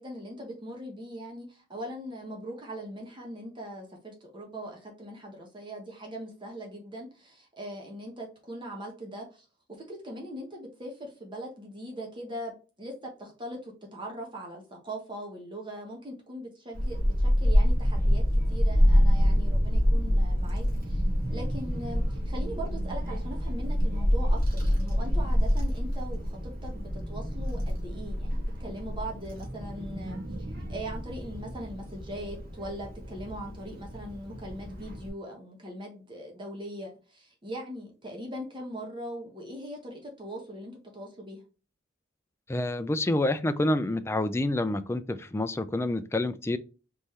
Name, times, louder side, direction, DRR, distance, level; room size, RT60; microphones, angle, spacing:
voice 1, 0.0-9.4 9.8-18.2 18.5-21.0 21.3-30.2 30.5-41.4, right 1 dB, 25° right, 1.1 m, -40 dB
Child speech kid speaking / Wind, 16.7-35.1, equal, 55° right, 1.8 m, -27 dB
voice 2, 42.5-46.6, left 1 dB, 15° left, 0.4 m, -28 dB
4.1 x 3.7 x 3.1 m
head